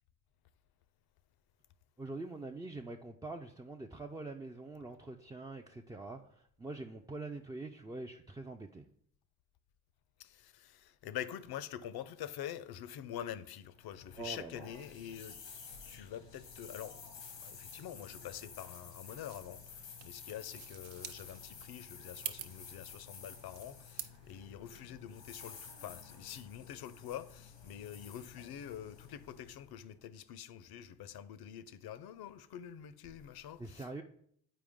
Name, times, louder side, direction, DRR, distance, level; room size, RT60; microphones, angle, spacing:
voice 1, 2.0-8.9 14.2-14.7 33.6-34.0, right 3 dB, 10° right, 0.3 m, -44 dB
voice 2, 10.2-15.4 15.9-34.0, left 10 dB, 55° left, 0.6 m, -46 dB
sound 1, 13.7-29.9, left 6 dB, 90° left, 1.2 m, -52 dB
sound 2, 19.3-24.3, right 10 dB, 70° right, 0.7 m, -48 dB
7.7 x 4.7 x 3.6 m
hypercardioid pair, 45°, 46 cm